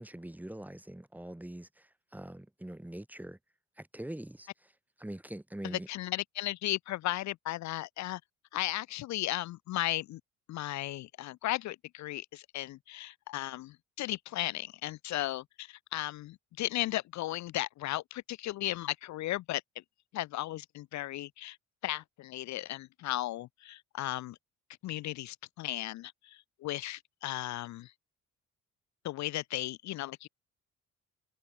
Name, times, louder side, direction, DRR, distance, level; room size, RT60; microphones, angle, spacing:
voice 1, 0.0-3.4 3.8-4.7 5.0-5.9, right 1 dB, 5° right, 1.0 m, -43 dB
voice 2, 5.9-8.2 8.5-10.2 10.5-19.6 20.1-21.6 21.8-24.4 24.8-27.9 29.0-30.3, left 15 dB, 70° left, 0.5 m, -35 dB
cardioid pair, 90°, 30 cm